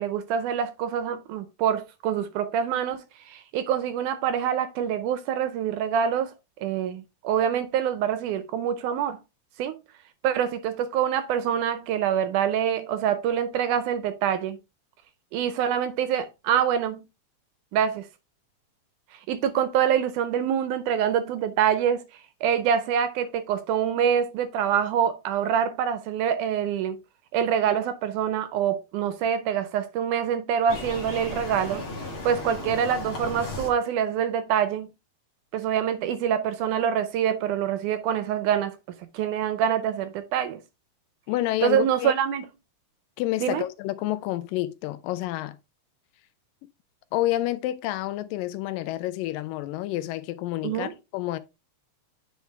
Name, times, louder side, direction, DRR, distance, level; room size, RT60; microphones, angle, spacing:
voice 1, 0.0-6.3 6.6-9.2 9.6-9.8 10.2-14.6 15.3-17.0 17.7-18.1 19.3-22.0 22.4-27.0 27.3-31.9 32.2-34.9 35.5-38.8 39.1-40.6 41.6-42.5 43.4-43.6 50.6-50.9, right 8 dB, 80° right, 2.0 m, -25 dB
sound 1, 30.7-33.7, left 2 dB, 45° left, 2.1 m, -35 dB
voice 2, 41.3-42.2 43.2-45.6 47.1-51.4, left 15 dB, 85° left, 2.3 m, -29 dB
9.1 x 4.6 x 3.4 m
omnidirectional pair, 3.9 m